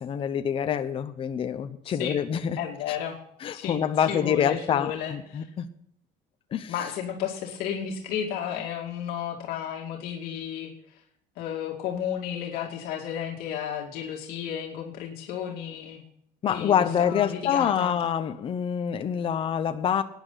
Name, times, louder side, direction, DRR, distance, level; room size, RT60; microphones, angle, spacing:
voice 1, 0.0-2.6 3.4-5.7 6.5-6.7 16.4-20.0, left 8 dB, 35° left, 0.9 m, -26 dB
voice 2, 1.8-2.2 2.6-3.2 3.5-5.5 6.7-11.0 11.4-16.0 16.5-18.0, left 9 dB, 65° left, 2.4 m, -33 dB
17.5 x 10.0 x 4.0 m
cardioid pair, 145°, 16 cm